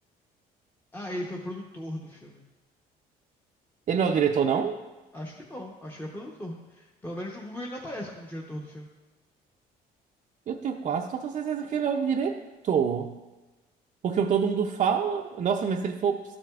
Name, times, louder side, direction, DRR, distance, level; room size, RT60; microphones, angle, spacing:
voice 1, 0.9-2.4 5.1-8.9, left 1 dB, 10° left, -2 dB, 0.9 m, -38 dB
voice 2, 3.9-4.8 10.5-13.1 14.0-16.4, right 7 dB, 45° right, 2 dB, 0.5 m, -26 dB
12.5 x 7.5 x 2.4 m, 1.2 s
cardioid pair, 110°, 17 cm